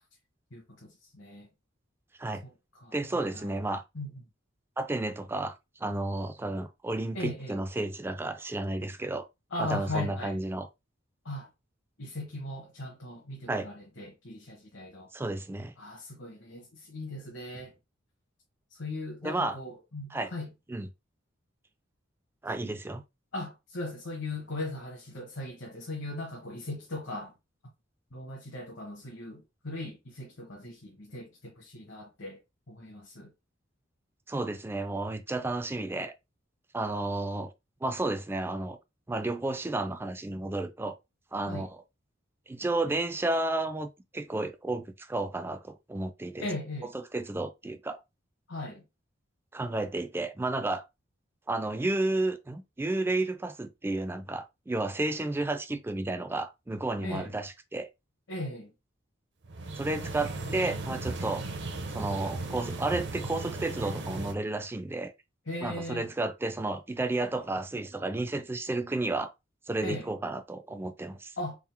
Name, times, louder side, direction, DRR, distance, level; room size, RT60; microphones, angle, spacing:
voice 1, 0.5-1.5 2.8-3.5 3.9-4.1 7.1-7.6 9.5-10.4 11.2-11.5 12.0-15.1 15.8-17.7 18.7-20.5 23.3-27.3 28.1-32.4 32.7-33.3 41.5-41.7 46.4-46.9 48.5-48.8 57.0-57.3 58.3-58.7 65.5-66.1 69.8-70.1 71.4-71.6, left 2 dB, 65° left, 1.0 m, -38 dB
voice 2, 2.9-3.8 4.8-5.6 5.8-9.3 9.6-10.7 13.5-13.7 15.1-15.7 19.2-19.6 20.1-20.3 20.7-20.9 22.4-23.0 34.3-36.1 36.7-37.5 37.8-38.8 39.1-41.0 41.3-41.8 42.5-46.5 46.9-48.0 49.5-50.8 51.5-57.9 59.8-61.4 61.9-65.1 65.6-69.3 69.7-71.3, right 2 dB, 10° right, 0.3 m, -32 dB
sound 1, 59.4-64.3, right 2 dB, 60° right, 0.7 m, -36 dB
3.7 x 2.1 x 4.3 m
head